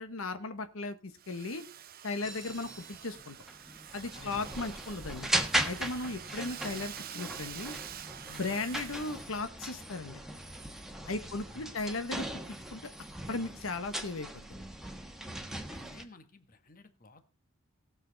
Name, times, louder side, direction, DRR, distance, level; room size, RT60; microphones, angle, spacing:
voice 1, 0.0-1.6 2.0-3.4 3.9-5.3 5.6-7.8 8.3-10.2 11.1-12.3 12.7-12.9 13.3-14.4, left 3 dB, 85° left, 9 dB, 1.1 m, -36 dB
Domestic sounds home sounds, 1.2-9.4, right 10 dB, 45° right, 0.7 m, -47 dB
sound 1, 2.2-16.0, right 1 dB, ahead, 1.3 m, -38 dB
voice 2, 4.1-4.6 11.0-11.8 15.4-17.2, left 2 dB, 45° left, 9 dB, 1.3 m, -55 dB
19.0 x 6.8 x 3.9 m, 0.30 s
head